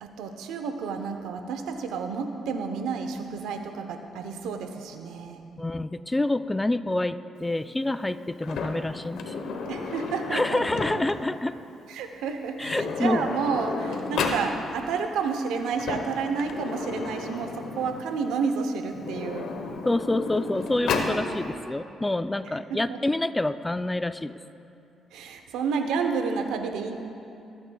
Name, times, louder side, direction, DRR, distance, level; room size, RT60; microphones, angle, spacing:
voice 1, 0.0-5.5 9.7-10.6 11.9-19.5 22.7-23.0 25.1-27.0, right 5 dB, 90° right, 6 dB, 0.8 m, -30 dB
voice 2, 5.6-9.5 10.3-11.6 12.6-13.2 19.9-24.4, left 2 dB, 15° left, 12 dB, 0.3 m, -27 dB
Sliding door, 8.4-11.3 12.3-12.4 12.6-14.5 15.6-18.1 18.9-21.2, left 4 dB, 75° left, 1.0 m, -32 dB
22.5 x 9.3 x 2.3 m, 2.7 s
cardioid pair, 90°, 0 cm